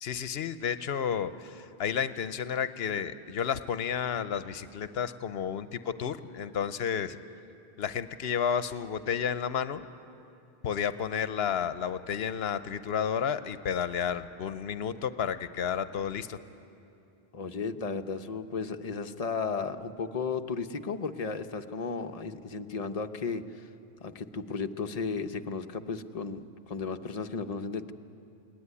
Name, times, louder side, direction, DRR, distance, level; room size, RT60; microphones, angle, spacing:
voice 1, 0.0-7.2 7.8-9.8 10.6-16.4, left 7 dB, 75° left, 12 dB, 0.9 m, -31 dB
voice 2, 17.3-23.7 24.0-27.9, left 5 dB, 40° left, 7 dB, 0.8 m, -34 dB
21.0 x 18.5 x 9.8 m, 2.7 s
omnidirectional pair, 1.0 m